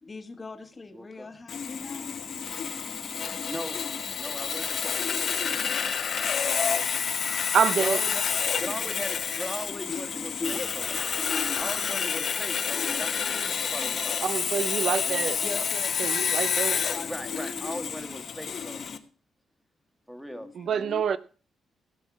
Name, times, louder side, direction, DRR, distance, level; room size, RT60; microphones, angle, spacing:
voice 1, 0.0-2.2 5.4-5.7 9.9-10.1 10.4-11.4 15.4-17.6 20.4-21.0, left 3 dB, 30° left, 1.4 m, -40 dB
voice 2, 0.9-1.3 2.2-2.3 3.5-3.8 4.2-5.0 6.4-6.9 7.8-8.2 8.5-10.9 11.6-13.1 13.5-14.3 14.8-15.7 17.1-18.8 20.1-20.5, equal, ahead, 1.6 m, -39 dB
Sawing, 1.5-19.0, left 7 dB, 55° left, 1.2 m, -29 dB
voice 3, 7.5-8.0 14.2-15.4 16.0-16.8 20.6-21.2, right 7 dB, 65° right, 0.5 m, -26 dB
16.0 x 6.3 x 6.0 m
cardioid pair, 100°, 0 cm